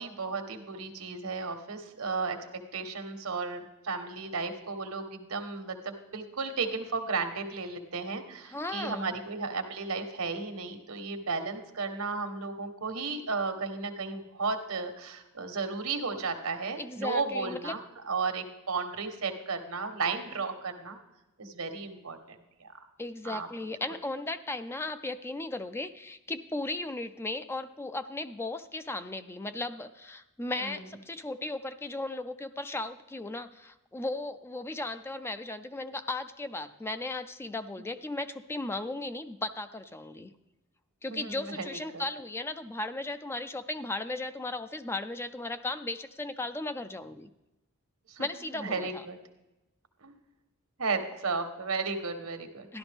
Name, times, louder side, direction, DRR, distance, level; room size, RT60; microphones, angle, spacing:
voice 1, 0.0-2.4 2.7-17.8 18.0-21.0 21.4-22.7 23.2-23.5 30.6-30.8 41.1-42.0 48.1-48.2 48.5-49.2 50.0-50.1 50.8-52.8, right 4 dB, 80° right, 6 dB, 1.2 m, -34 dB
voice 2, 8.5-9.1 16.8-17.8 23.0-40.3 41.0-47.3 48.2-49.1 52.7-52.8, left 2 dB, 10° left, 10 dB, 0.3 m, -36 dB
13.0 x 11.5 x 3.5 m, 0.97 s
head